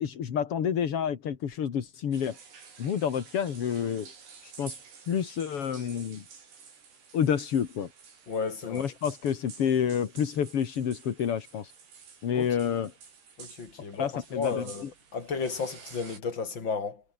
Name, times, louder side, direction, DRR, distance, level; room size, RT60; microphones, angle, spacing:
voice 1, 0.0-2.4 2.8-4.1 4.4-4.7 5.1-6.2 7.1-7.9 8.6-11.7 12.2-12.9 13.9-14.9, left 8 dB, 55° left, 1.7 m, -29 dB
sound 1, 2.1-16.2, right 6 dB, 65° right, 7.7 m, -51 dB
voice 2, 8.3-8.8 12.3-12.5 13.4-17.0, left 5 dB, 30° left, 3.5 m, -33 dB
omnidirectional pair, 5.3 m